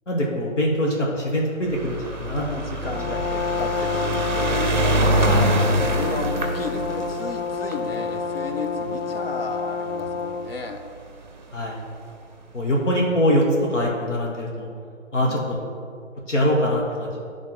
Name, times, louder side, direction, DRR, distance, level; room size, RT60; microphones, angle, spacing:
voice 1, 0.1-2.4 5.2-5.6 11.5-11.8 12.5-13.4 13.7-14.7 15.1-15.7 16.3-17.2, equal, 70° left, -2 dB, 1.5 m, -23 dB
sound 1, 1.6-10.1 11.0-11.1 11.3-11.4 11.6-11.7, right 1 dB, 40° right, 0.6 m, -25 dB
voice 2, 2.2-4.7 5.7-10.8 12.7-12.8 15.2-15.6, left 4 dB, 50° left, 6 dB, 0.7 m, -34 dB
Brass instrument, 2.8-10.6, left 5 dB, 90° left, 0.7 m, -28 dB
9.9 x 3.5 x 5.7 m, 2.3 s
hypercardioid pair, 175°, 38 cm